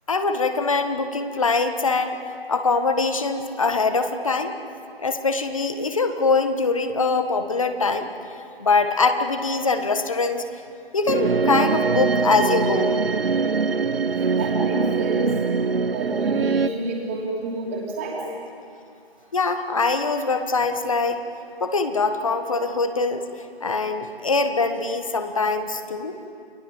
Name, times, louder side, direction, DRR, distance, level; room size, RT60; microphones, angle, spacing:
voice 1, 0.1-2.2 2.5-4.5 5.0-8.1 8.6-10.4 10.9-12.9 19.3-21.2 21.6-23.2 23.6-26.2, left 3 dB, 35° left, 8 dB, 1.4 m, -23 dB
sound 1, 11.1-16.7, right 4 dB, 70° right, 1.1 m, -22 dB
voice 2, 14.4-15.4 15.9-18.2, right 2 dB, 15° right, -2 dB, 2.8 m, -29 dB
29.5 x 19.5 x 7.2 m, 2.4 s
figure-of-eight pair, 170°, 31 cm